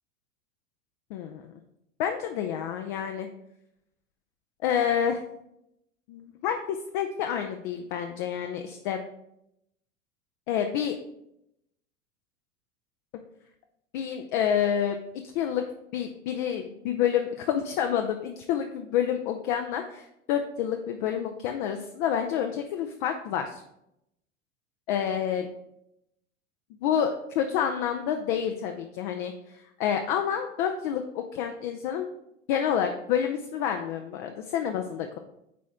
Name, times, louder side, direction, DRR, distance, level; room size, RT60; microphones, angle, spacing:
voice 1, 1.1-1.5 2.0-3.3 4.6-5.2 6.1-9.0 10.5-11.0 13.9-15.0 15.3-15.6 15.9-23.6 24.9-25.5 26.8-32.1 32.5-35.2, left 8 dB, 40° left, 5 dB, 0.5 m, -28 dB
8.4 x 4.2 x 3.6 m, 0.82 s
figure-of-eight pair, 85°, 38 cm